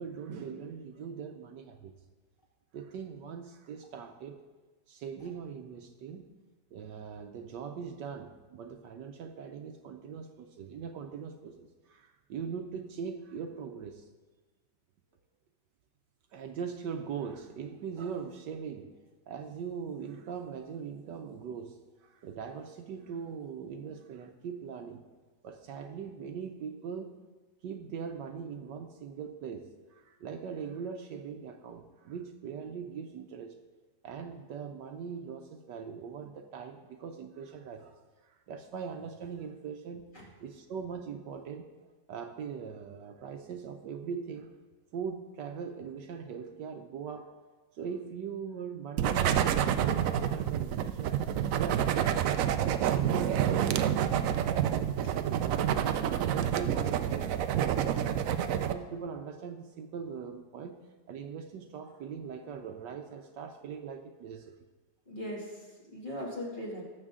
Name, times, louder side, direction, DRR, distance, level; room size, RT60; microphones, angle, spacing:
voice 1, 0.0-2.0 2.7-4.4 4.9-6.3 6.7-14.0 16.3-18.9 19.3-25.0 25.4-27.2 27.6-33.6 34.0-40.1 40.4-41.7 42.1-44.6 44.9-47.3 47.7-51.2 51.6-52.7 53.0-55.7 56.1-58.2 58.5-64.6, right 6 dB, 70° right, 6 dB, 1.3 m, -41 dB
sound 1, 49.0-58.7, right 9 dB, 90° right, 0.7 m, -28 dB
voice 2, 65.1-66.8, equal, 25° left, -4 dB, 2.6 m, -40 dB
18.5 x 7.2 x 3.7 m, 1.3 s
omnidirectional pair, 2.0 m